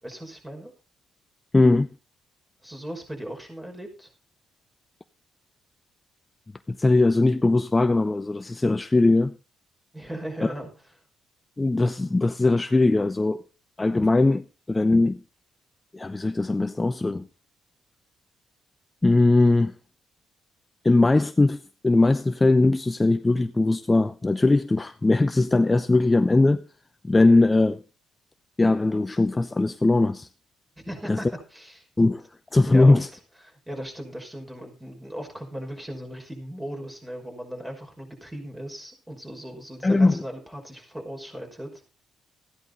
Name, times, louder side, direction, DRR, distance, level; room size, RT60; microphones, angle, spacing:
voice 1, 0.0-0.7 2.6-4.1 9.9-10.7 30.8-31.9 32.7-33.1 33.4-41.7, equal, 10° right, 5.7 m, -37 dB
voice 2, 1.5-1.9 6.7-9.3 11.6-13.4 13.8-15.2 15.9-17.2 19.0-19.7 20.8-26.6 27.0-27.8 28.6-30.3 31.1-31.2 32.0-32.2 32.5-33.1 39.8-40.1, left 2 dB, 20° left, 0.6 m, -20 dB
14.5 x 10.5 x 4.1 m
cardioid pair, 90°, 0 cm